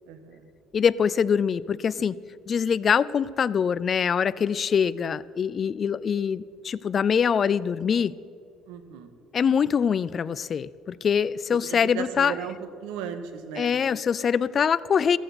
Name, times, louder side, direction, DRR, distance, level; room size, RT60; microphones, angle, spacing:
voice 1, 0.1-0.4 8.7-9.1 11.7-13.7, right 8 dB, 90° right, 9 dB, 1.6 m, -36 dB
voice 2, 0.7-2.2 2.5-8.1 9.3-12.4 13.6-15.2, left 7 dB, 35° left, 19 dB, 0.4 m, -24 dB
16.0 x 14.5 x 6.0 m, 2.4 s
cardioid pair, 130°, 0 cm